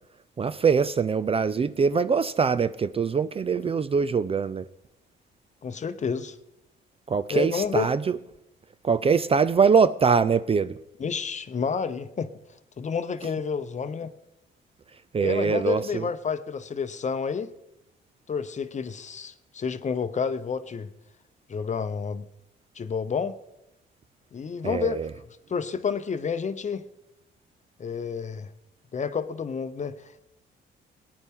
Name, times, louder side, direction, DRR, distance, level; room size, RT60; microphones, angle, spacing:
voice 1, 0.4-4.6 7.1-8.2 8.8-10.8 15.1-16.1 24.6-25.1, right 5 dB, 30° right, 0.4 m, -23 dB
voice 2, 5.6-6.4 7.3-7.9 11.0-12.3 12.8-14.1 15.2-17.5 18.3-20.9 21.5-22.3 22.8-23.3 24.3-25.0 25.5-26.9 27.8-28.5 28.9-30.2, left 6 dB, 35° left, 0.8 m, -29 dB
18.5 x 9.7 x 3.6 m
cardioid pair, 90°, 20 cm